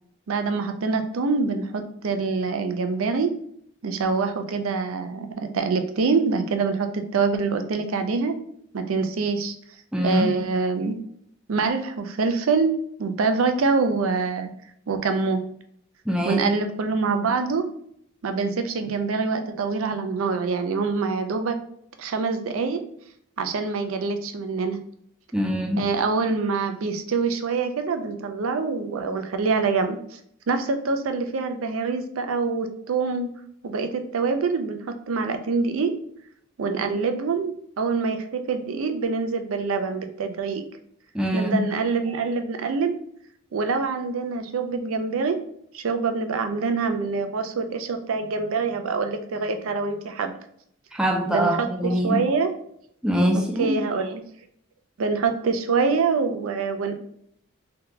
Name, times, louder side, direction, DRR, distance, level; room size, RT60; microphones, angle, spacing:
voice 1, 0.3-3.3 3.8-8.4 8.7-9.5 10.0-10.9 11.5-14.5 14.9-15.4 16.2-17.6 18.2-21.6 22.0-22.8 23.4-24.8 25.8-30.2 30.5-33.3 33.6-34.8 35.1-35.9 36.6-40.6 41.3-42.9 43.5-45.4 45.7-50.3 51.3-52.5 53.3-54.2 55.0-57.0, right 4 dB, 75° right, 0.4 m, -25 dB
voice 2, 9.9-10.4 16.1-16.5 25.3-25.9 41.1-41.7 50.9-52.2 53.0-53.8, equal, 5° right, 0.4 m, -23 dB
3.7 x 2.8 x 2.2 m
head